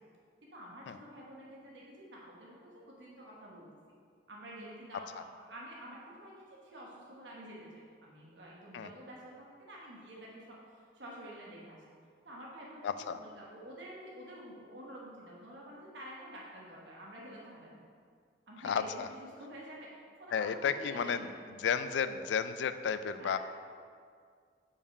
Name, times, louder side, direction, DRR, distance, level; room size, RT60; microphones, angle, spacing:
voice 1, 0.4-3.7 4.3-11.8 12.2-17.8 18.5-18.9 19.4-19.9 20.2-21.3 23.2-23.4, right 1 dB, 75° right, -4 dB, 1.2 m, -49 dB
voice 2, 12.8-13.2 18.6-19.1 20.3-21.3 21.6-23.4, left 7 dB, 75° left, 12 dB, 0.3 m, -33 dB
5.1 x 4.9 x 5.4 m, 2.1 s
head